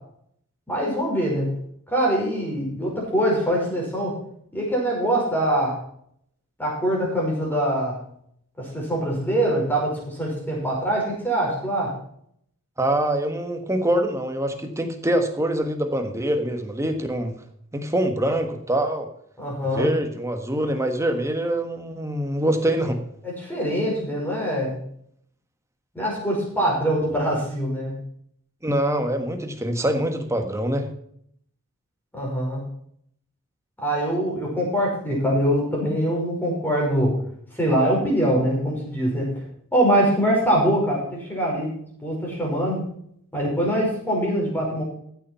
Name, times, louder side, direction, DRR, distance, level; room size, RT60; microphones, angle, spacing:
voice 1, 0.7-1.6 1.9-4.2 4.5-5.7 6.6-8.0 8.6-11.9 19.4-19.9 23.2-24.7 25.9-28.0 32.1-32.7 33.8-37.2 37.6-39.3 39.7-41.7 42.0-42.8 43.3-44.8, right 1 dB, 10° left, -3 dB, 5.3 m, -23 dB
voice 2, 12.8-17.3 17.7-19.1 19.7-23.0 28.6-30.9, right 1 dB, 15° right, 6 dB, 1.5 m, -24 dB
15.0 x 7.1 x 5.7 m, 0.67 s
head